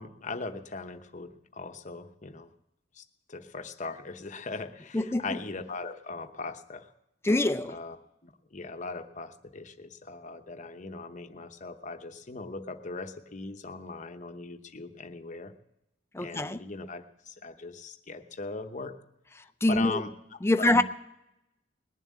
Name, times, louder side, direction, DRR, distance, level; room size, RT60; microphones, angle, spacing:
voice 1, 0.0-2.5 2.9-6.9 7.7-8.0 8.2-15.5 16.2-18.9 19.7-20.1 20.6-20.8, left 3 dB, 40° left, 7 dB, 0.9 m, -39 dB
voice 2, 4.9-5.3 7.2-7.8 16.1-16.6 19.6-20.0 20.4-20.8, left 1 dB, 15° left, 11 dB, 0.5 m, -24 dB
20.0 x 7.3 x 9.5 m, 0.89 s
head